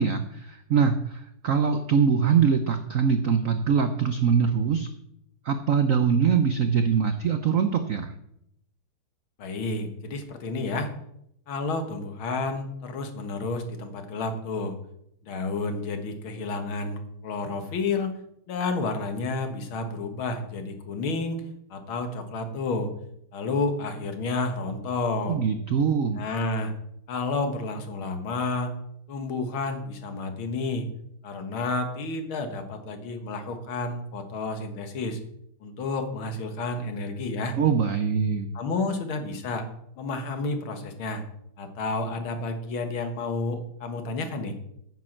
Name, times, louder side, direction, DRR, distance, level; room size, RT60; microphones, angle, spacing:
voice 1, 0.0-4.9 5.4-8.1 25.3-26.2 37.6-38.5, right 6 dB, 90° right, 8 dB, 0.7 m, -23 dB
voice 2, 9.4-10.9 11.5-14.8 15.2-18.2 18.5-21.4 21.7-22.9 23.3-25.4 26.2-26.7 27.1-28.7 29.1-30.9 31.2-35.2 35.6-37.6 38.5-39.7 40.0-41.2 41.6-44.6, left 3 dB, 70° left, 6 dB, 2.2 m, -30 dB
9.1 x 7.7 x 7.3 m, 0.76 s
omnidirectional pair, 2.4 m